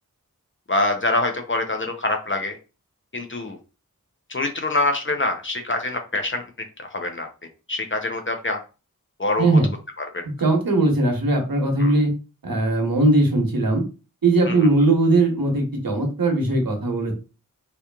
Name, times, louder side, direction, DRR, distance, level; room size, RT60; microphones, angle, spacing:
voice 1, 0.7-2.6 3.1-3.6 4.3-6.4 6.8-7.3 7.7-8.6 9.2-9.6 10.0-10.2 11.8-11.9 14.4-14.6, left 2 dB, 35° left, 5 dB, 0.6 m, -25 dB
voice 2, 9.4-9.7 10.4-12.1 12.4-13.8 14.2-17.1, right 2 dB, 85° right, 2 dB, 0.9 m, -19 dB
2.9 x 2.4 x 2.3 m, 0.32 s
wide cardioid pair, 50°, 34 cm